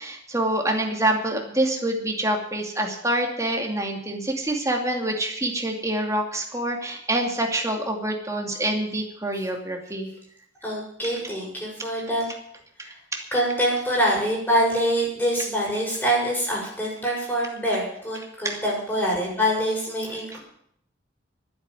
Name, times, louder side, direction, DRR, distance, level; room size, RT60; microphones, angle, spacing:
voice 1, 0.0-10.1 12.8-13.2 18.4-18.6 20.3-20.4, right 1 dB, 15° right, 2 dB, 2.5 m, -26 dB
voice 2, 10.6-12.2 13.3-20.4, equal, 10° left, -3 dB, 6.9 m, -25 dB
12.5 x 9.8 x 9.2 m, 0.69 s
head